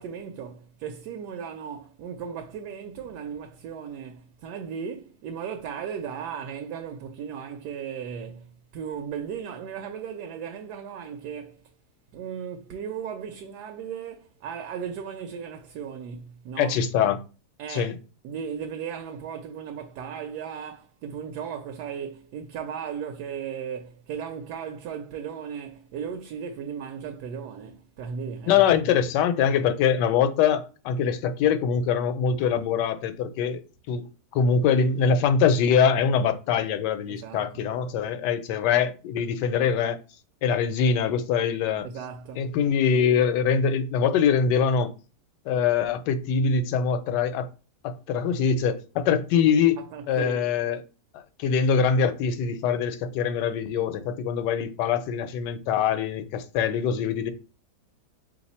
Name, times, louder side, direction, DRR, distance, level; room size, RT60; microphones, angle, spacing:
voice 1, 0.0-11.6 12.1-16.8 17.6-17.9 18.2-28.9 37.1-37.6 41.8-42.5 49.8-50.5, right 7 dB, 75° right, 1.1 m, -36 dB
voice 2, 16.6-17.2 17.7-18.0 28.5-33.6 33.9-40.0 40.4-41.9 42.4-44.9 45.5-47.5 47.8-49.8 50.1-50.8 51.1-57.3, left 7 dB, 85° left, 1.2 m, -23 dB
3.9 x 2.9 x 4.2 m
omnidirectional pair, 1.8 m